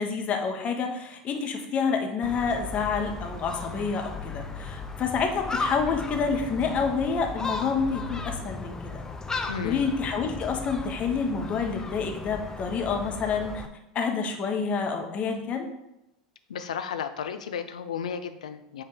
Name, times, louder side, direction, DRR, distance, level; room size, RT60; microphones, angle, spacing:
voice 1, 0.0-9.0 9.3-13.6 13.9-15.7, left 5 dB, 40° left, 3 dB, 1.0 m, -28 dB
Gull seagull, 2.2-13.7, left 3 dB, 15° left, 0.6 m, -36 dB
voice 2, 9.5-9.8 16.5-18.8, left 7 dB, 75° left, 9 dB, 0.4 m, -33 dB
7.0 x 2.8 x 4.9 m, 0.87 s
hypercardioid pair, 80°, 4 cm